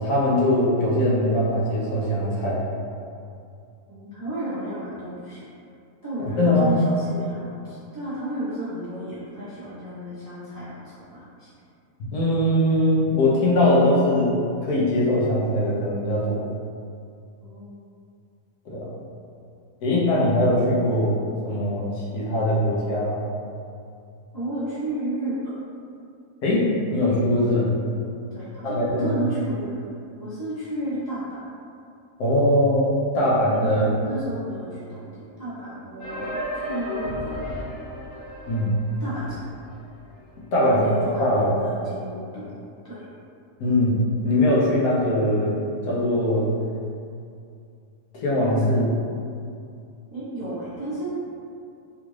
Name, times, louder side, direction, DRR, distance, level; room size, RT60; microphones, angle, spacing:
voice 1, 0.0-2.6 6.4-6.7 12.1-14.3 14.6-16.4 18.7-18.9 19.8-21.2 21.4-23.2 26.4-27.7 28.6-29.1 32.2-34.0 38.5-38.7 40.5-40.8 41.2-41.5 43.6-44.0 44.2-45.5 45.8-46.5 48.1-48.9, left 1 dB, 80° left, -6 dB, 1.2 m, -21 dB
voice 2, 3.9-5.4 6.0-11.5 17.4-17.9 24.3-25.5 27.5-27.6 28.3-29.9 30.2-31.4 33.5-37.6 39.0-39.4 40.6-43.0 50.1-51.1, right 1 dB, 25° right, -11 dB, 0.5 m, -33 dB
sound 1, 36.0-39.7 40.0-40.1 40.3-40.4 41.0-41.1, left 1 dB, 45° left, 1.1 m, -33 dB
3.5 x 2.4 x 3.1 m, 2.4 s
omnidirectional pair, 1.6 m